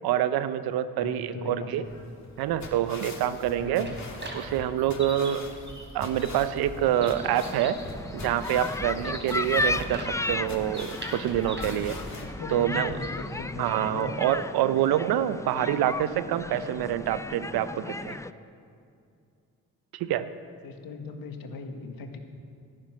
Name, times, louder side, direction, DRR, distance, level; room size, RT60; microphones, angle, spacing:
voice 1, 0.0-1.8 2.4-3.9 4.3-5.5 5.9-7.8 8.1-12.0 12.5-13.0 13.6-18.2 19.9-20.3, right 11 dB, 80° right, 13 dB, 0.7 m, -26 dB
voice 2, 1.0-1.9 3.6-4.0 12.1-14.1 20.6-22.2, left 4 dB, 70° left, 5 dB, 1.6 m, -39 dB
sound 1, 1.8-12.2, left 3 dB, 50° left, 2.5 m, -43 dB
sound 2, 3.3-13.4, right 1 dB, 30° right, 3.7 m, -42 dB
sound 3, 6.8-18.3, left 2 dB, 10° left, 0.5 m, -34 dB
13.5 x 10.5 x 6.2 m, 2.4 s
supercardioid pair, 55°, 36 cm